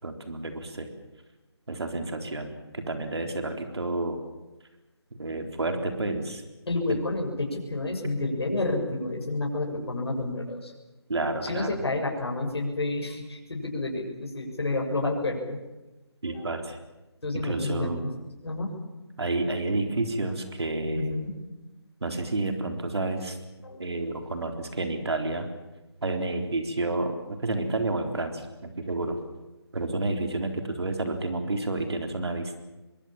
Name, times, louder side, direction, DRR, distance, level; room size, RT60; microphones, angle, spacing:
voice 1, 0.0-0.9 1.7-4.2 5.2-6.4 6.9-7.0 11.1-11.8 16.2-16.8 17.3-18.0 19.2-21.2 22.0-23.4 23.8-25.5 26.0-29.2 29.7-32.6, right 2 dB, 70° right, 5 dB, 3.9 m, -30 dB
voice 2, 6.7-10.7 11.4-15.6 16.3-16.5 17.2-18.1 18.4-18.8 21.0-21.4 23.6-23.8, left 2 dB, 70° left, 1 dB, 6.9 m, -30 dB
24.0 x 22.0 x 7.4 m, 1.1 s
figure-of-eight pair, 165°, 14 cm